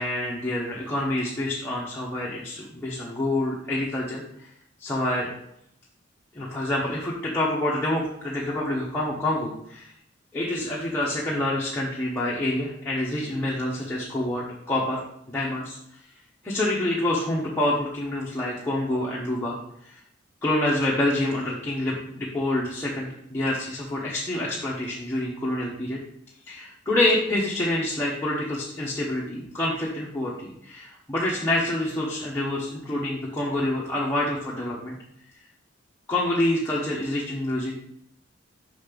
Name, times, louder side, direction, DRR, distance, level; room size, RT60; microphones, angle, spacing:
voice 1, 0.0-4.2 4.8-5.3 6.3-9.9 10.3-15.0 15.3-15.8 16.4-19.6 19.8-19.9 20.4-26.0 26.5-35.0 36.1-37.7, left 1 dB, 10° left, -6 dB, 1.0 m, -27 dB
5.8 x 4.2 x 5.1 m, 0.73 s
head